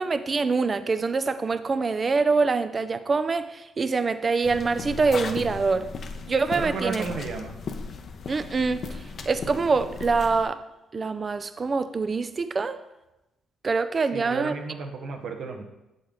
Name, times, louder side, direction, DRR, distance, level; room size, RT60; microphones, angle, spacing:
voice 1, 0.0-5.9 6.3-7.0 8.3-8.9 9.3-10.6 10.9-12.8 13.6-14.5, right 4 dB, 35° right, 12 dB, 0.4 m, -25 dB
sound 1, 4.4-10.5, left 4 dB, 55° left, 0.6 m, -36 dB
voice 2, 6.5-7.5 14.1-15.6, right 4 dB, 70° right, 3 dB, 1.0 m, -33 dB
7.0 x 5.2 x 3.7 m, 0.95 s
cardioid pair, 90°, 0 cm